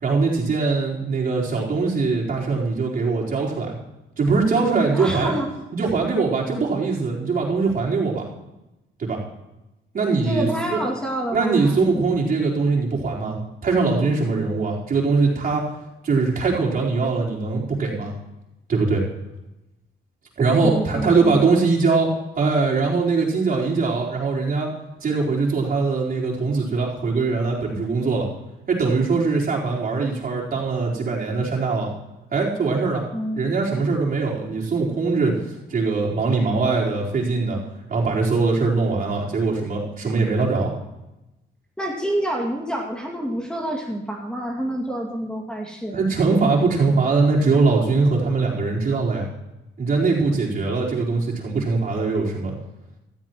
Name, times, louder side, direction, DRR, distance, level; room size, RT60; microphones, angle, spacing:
voice 1, 0.0-3.7 4.2-5.3 5.7-8.3 9.0-9.2 9.9-10.8 11.3-15.6 16.0-18.1 18.7-19.0 20.4-24.7 25.0-28.3 28.7-31.9 32.3-33.0 33.4-35.4 35.7-37.6 37.9-40.7 45.9-49.3 49.8-52.6, right 4 dB, 45° right, -4 dB, 4.3 m, -21 dB
voice 2, 4.9-5.5 10.2-12.0 20.6-21.4 33.1-33.5 41.8-46.0, right 1 dB, 5° left, -1 dB, 2.3 m, -27 dB
15.5 x 13.5 x 3.1 m, 0.95 s
cardioid pair, 90°, 20 cm